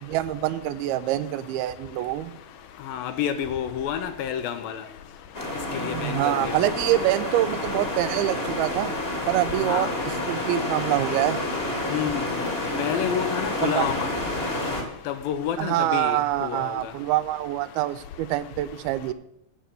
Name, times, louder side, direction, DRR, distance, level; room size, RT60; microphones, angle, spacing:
voice 1, 0.0-2.3 5.7-9.0 9.3-11.4 13.6-13.9 15.6-19.1, right 14 dB, 80° right, 15 dB, 2.5 m, -25 dB
voice 2, 2.9-4.8 5.8-6.6 9.7-9.9 11.9-12.4 12.8-14.1 15.1-16.7, left 9 dB, 75° left, 10 dB, 2.4 m, -29 dB
sound 1, 5.3-14.8, left 1 dB, 25° left, 1.3 m, -29 dB
10.0 x 6.9 x 7.5 m, 0.78 s
omnidirectional pair, 4.5 m